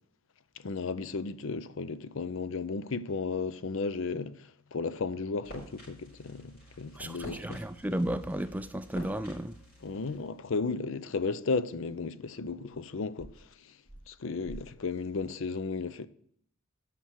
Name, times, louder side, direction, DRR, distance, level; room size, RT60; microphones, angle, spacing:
voice 1, 0.6-7.6 9.8-13.5 14.1-16.1, left 4 dB, 60° left, 0.5 m, -34 dB
sound 1, 5.4-10.4, right 1 dB, 45° left, 4.6 m, -50 dB
voice 2, 7.0-9.6, right 1 dB, 5° right, 0.3 m, -33 dB
9.1 x 5.9 x 6.4 m
head